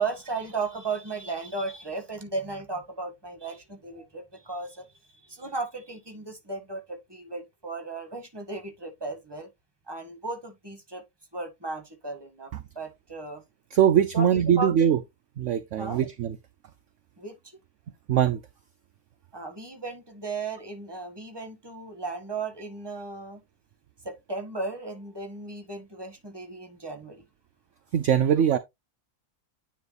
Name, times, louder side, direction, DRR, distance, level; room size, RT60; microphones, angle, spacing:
voice 1, 0.0-4.8 5.2-9.5 9.9-11.0 11.3-13.4 14.1-14.7 15.8-16.0 17.2-17.6 19.3-23.4 24.0-27.2, right 3 dB, 15° right, 1.6 m, -35 dB
voice 2, 13.7-15.0 15.4-16.4 18.1-18.4 27.9-28.6, right 9 dB, 60° right, 0.9 m, -22 dB
9.6 x 3.2 x 4.1 m
omnidirectional pair, 1.6 m